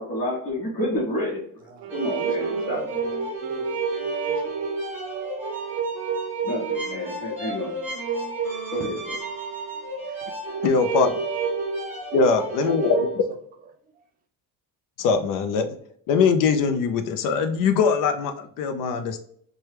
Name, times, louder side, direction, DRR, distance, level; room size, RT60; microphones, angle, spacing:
voice 1, 0.0-1.4 1.9-2.8 6.4-7.7 8.7-9.0, equal, 45° left, 0.9 m, -29 dB
voice 2, 1.6-4.7 8.5-9.0 9.7-11.2 11.6-11.7 12.1-13.4, right 4 dB, 25° right, 0.3 m, -41 dB
Wind instrument woodwind instrument, 1.8-10.0, right 8 dB, 75° right, 0.5 m, -40 dB
sound 1, 1.9-13.2, right 4 dB, 5° right, 0.9 m, -29 dB
voice 3, 10.6-11.2 12.1-13.1 15.0-15.8 16.1-19.2, left 5 dB, 65° left, 0.5 m, -22 dB
2.9 x 2.2 x 3.2 m
cardioid pair, 165°, 35 cm